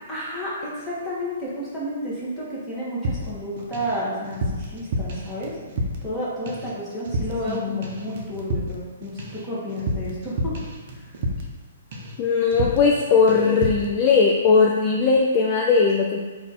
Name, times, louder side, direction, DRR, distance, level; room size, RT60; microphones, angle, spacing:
voice 1, 0.1-5.5 6.0-10.5 10.9-11.0, equal, ahead, -11 dB, 1.2 m, -31 dB
sound 1, 3.0-4.0 4.2-6.2 6.5-6.8 7.0-7.6 7.8-11.6 11.9-12.2 12.5-13.0 13.3-13.9, equal, 45° right, 0.7 m, -30 dB
voice 2, 7.5-7.9 12.2-16.2, left 5 dB, 25° left, -1 dB, 0.3 m, -19 dB
4.1 x 2.5 x 4.2 m, 1.4 s
hypercardioid pair, 160°, 0 cm